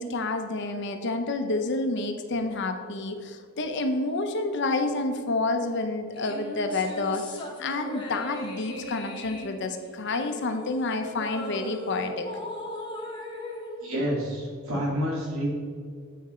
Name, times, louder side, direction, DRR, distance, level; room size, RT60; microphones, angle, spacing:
voice 1, 0.0-12.3, left 2 dB, 50° left, 6 dB, 0.7 m, -29 dB
sound 1, 6.1-14.7, left 1 dB, 20° left, 1.2 m, -38 dB
voice 2, 13.8-15.5, equal, 65° right, -3 dB, 2.2 m, -29 dB
8.3 x 6.1 x 4.3 m, 2.2 s
head